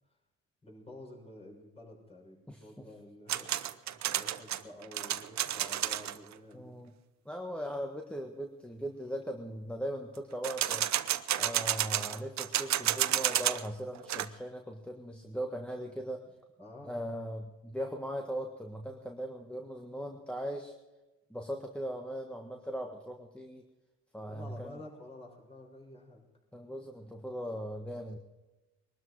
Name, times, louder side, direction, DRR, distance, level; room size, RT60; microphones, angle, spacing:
voice 1, 0.6-6.8 16.6-17.0 24.3-26.2, left 1 dB, 20° left, -2 dB, 6.4 m, -50 dB
voice 2, 2.5-2.9 6.5-6.9 7.2-10.9 11.3-16.2 16.8-20.7 21.3-23.6 24.1-24.8 26.5-28.2, equal, 5° left, 1 dB, 1.6 m, -39 dB
sound 1, 3.3-6.2 10.4-13.7 13.9-14.3, right 12 dB, 65° right, 0.8 m, -31 dB
21.5 x 12.5 x 4.8 m, 1.1 s
cardioid pair, 90°, 30 cm